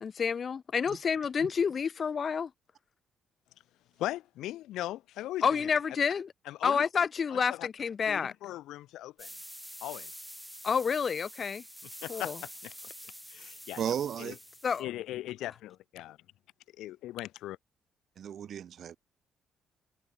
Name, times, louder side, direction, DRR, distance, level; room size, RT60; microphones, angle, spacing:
voice 1, 0.0-2.5 5.4-6.3 6.6-8.3 10.6-11.6 12.1-12.4 14.6-14.9, left 6 dB, 45° left, 0.5 m, -29 dB
voice 2, 4.0-5.4 6.5-6.8 7.3-7.7 8.1-9.3 9.8-10.1 12.0-12.7 13.3-13.8 14.2-14.3 14.8-16.2 16.8-17.6, left 15 dB, 90° left, 1.0 m, -39 dB
sound 1, 9.2-14.8, equal, ahead, 6.5 m, -47 dB
voice 3, 13.8-14.4 18.2-19.0, right 9 dB, 60° right, 2.6 m, -34 dB
cardioid pair, 90°, 0 cm